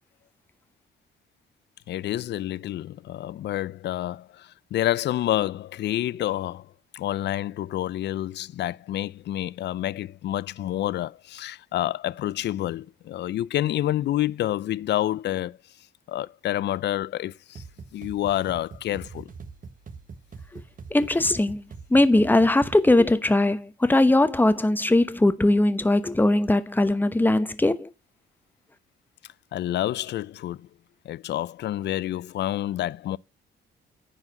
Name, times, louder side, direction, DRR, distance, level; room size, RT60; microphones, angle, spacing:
voice 1, 1.9-6.7 6.9-15.6 16.1-17.6 17.9-19.3 29.5-30.7 31.0-33.2, left 13 dB, 60° left, 0.4 m, -28 dB
sound 1, 17.5-23.1, right 5 dB, 45° right, 1.4 m, -43 dB
voice 2, 20.9-21.6 21.9-27.9, left 2 dB, 10° left, 1.0 m, -20 dB
9.8 x 4.9 x 7.8 m
cardioid pair, 90°, 20 cm